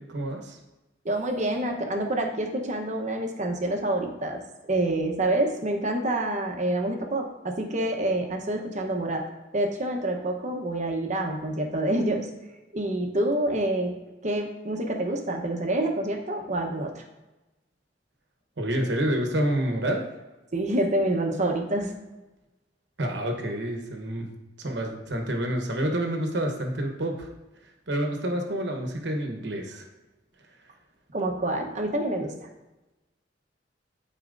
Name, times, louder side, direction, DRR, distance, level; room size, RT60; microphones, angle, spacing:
voice 1, 0.1-0.6 18.6-20.0 23.0-24.3 24.6-27.3 27.9-29.8, right 1 dB, 70° right, 3 dB, 1.1 m, -28 dB
voice 2, 1.0-9.3 9.5-12.3 12.7-13.9 14.2-17.0 20.5-21.9 31.1-32.3, right 1 dB, 40° right, 2 dB, 1.0 m, -27 dB
12.5 x 4.2 x 2.6 m, 1.1 s
head